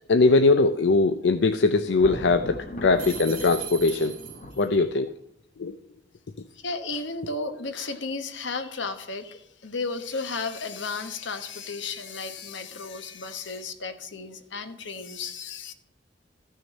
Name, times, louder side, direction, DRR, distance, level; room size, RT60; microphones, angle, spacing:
voice 1, 0.1-4.2 4.6-5.1 5.6-5.7, left 3 dB, 70° left, 0.5 m, -21 dB
Thunder, 1.9-5.2, left 1 dB, 45° left, 1.3 m, -40 dB
sound 1, 3.0-4.7, right 10 dB, 50° right, 2.2 m, -38 dB
voice 2, 6.5-15.7, left 4 dB, 85° left, 1.2 m, -34 dB
14.0 x 6.3 x 4.1 m
head